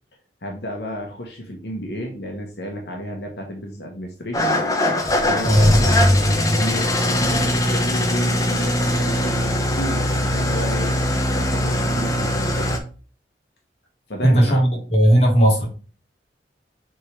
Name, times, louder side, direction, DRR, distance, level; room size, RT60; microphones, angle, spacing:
voice 1, 0.4-4.6 5.2-6.0 6.5-11.0 11.3-12.8 14.1-14.6, equal, 75° left, 1 dB, 1.3 m, -32 dB
Engine starting / Idling, 4.3-12.8, left 1 dB, 20° left, 0.8 m, -21 dB
voice 2, 5.4-5.8 8.8-8.9 14.2-15.7, equal, 35° left, -2 dB, 2.6 m, -16 dB
7.7 x 3.7 x 3.4 m, 0.37 s
head